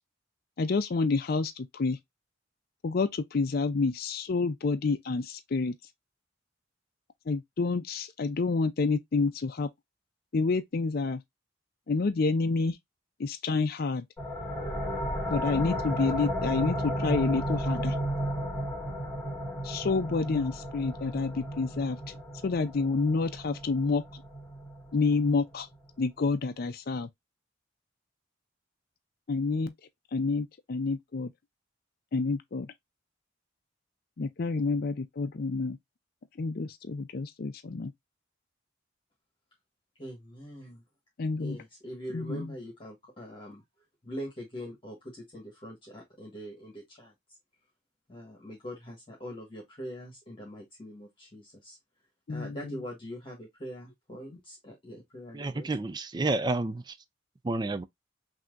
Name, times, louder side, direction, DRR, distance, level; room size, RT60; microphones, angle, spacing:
voice 1, 0.6-2.0 2.8-5.7 7.3-9.7 10.3-11.2 11.9-12.8 13.2-14.1 15.3-18.0 19.6-22.0 22.4-24.2 24.9-25.7 26.0-27.1 29.3-29.7 30.1-31.3 32.1-32.7 34.2-35.8 36.4-37.9 41.2-41.6 42.1-42.5 52.3-52.8, left 4 dB, 50° left, 0.5 m, -28 dB
sound 1, 14.2-25.5, equal, 10° left, 2.1 m, -33 dB
voice 2, 40.0-40.8 41.4-43.6 44.0-47.1 48.1-51.8 52.3-55.7, equal, 25° left, 1.4 m, -43 dB
voice 3, 55.3-57.0 57.4-57.8, right 2 dB, 20° right, 0.4 m, -30 dB
5.8 x 2.7 x 2.5 m
head